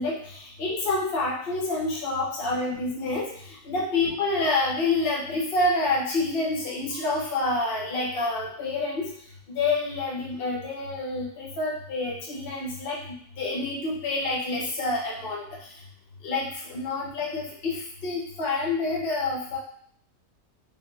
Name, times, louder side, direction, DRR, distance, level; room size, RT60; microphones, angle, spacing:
voice 1, 0.0-9.1 9.5-15.4 16.2-19.6, left 2 dB, 45° left, -4 dB, 1.0 m, -28 dB
3.6 x 2.5 x 4.0 m, 0.62 s
omnidirectional pair, 1.6 m